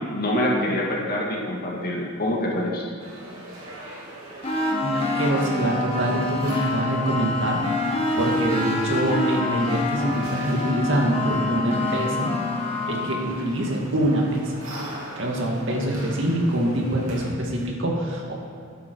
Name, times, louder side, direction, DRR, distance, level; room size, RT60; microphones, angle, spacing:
voice 1, 0.1-2.8, left 1 dB, 45° left, -2 dB, 2.1 m, -25 dB
sound 1, 3.0-17.3, right 1 dB, 85° right, 3.1 m, -42 dB
sound 2, 4.4-13.3, left 2 dB, 30° left, 1.3 m, -26 dB
voice 2, 4.8-7.6 8.1-12.3 12.9-14.5 15.2-18.3, right 1 dB, 60° right, -1 dB, 2.2 m, -25 dB
13.5 x 10.0 x 4.7 m, 2.4 s
head